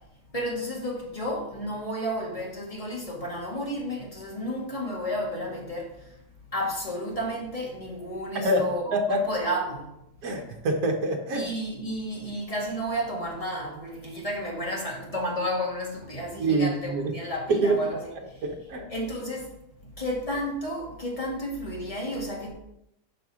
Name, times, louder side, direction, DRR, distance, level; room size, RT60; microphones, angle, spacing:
voice 1, 0.3-5.9 6.5-9.9 11.3-18.0 18.9-19.5 20.0-22.5, equal, 20° left, -3 dB, 2.0 m, -32 dB
voice 2, 8.3-9.2 10.2-11.5 16.4-17.2 17.5-17.8 18.1-18.9, right 2 dB, 70° right, 2 dB, 1.4 m, -26 dB
7.1 x 5.3 x 4.8 m, 0.81 s
omnidirectional pair, 1.7 m